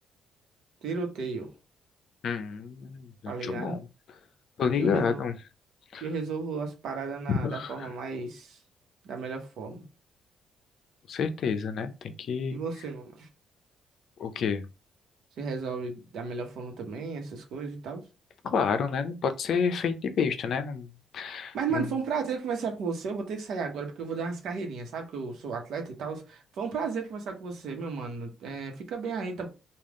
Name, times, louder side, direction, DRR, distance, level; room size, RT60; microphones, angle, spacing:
voice 1, 0.8-1.5 3.3-3.8 4.6-5.2 6.0-8.6 9.0-9.8 12.5-13.3 15.4-18.0 21.5-29.5, right 5 dB, 75° right, 1.0 m, -34 dB
voice 2, 2.2-3.8 4.6-5.3 5.9-6.0 7.3-7.9 11.1-12.6 14.2-14.6 18.4-20.9 21.1-21.9, left 6 dB, 65° left, 0.5 m, -29 dB
3.5 x 2.4 x 3.6 m
cardioid pair, 90°, 0 cm